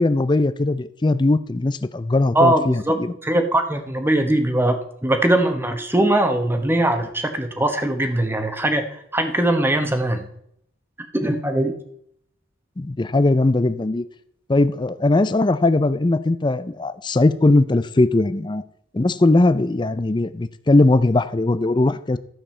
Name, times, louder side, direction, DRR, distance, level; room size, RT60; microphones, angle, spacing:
voice 1, 0.0-3.1 12.8-14.0 14.5-18.6 18.9-22.2, left 2 dB, 20° left, 13 dB, 0.4 m, -19 dB
voice 2, 2.3-3.0 3.2-10.3 11.1-11.7, right 1 dB, 10° right, 6 dB, 1.1 m, -21 dB
12.5 x 7.7 x 4.4 m, 0.71 s
head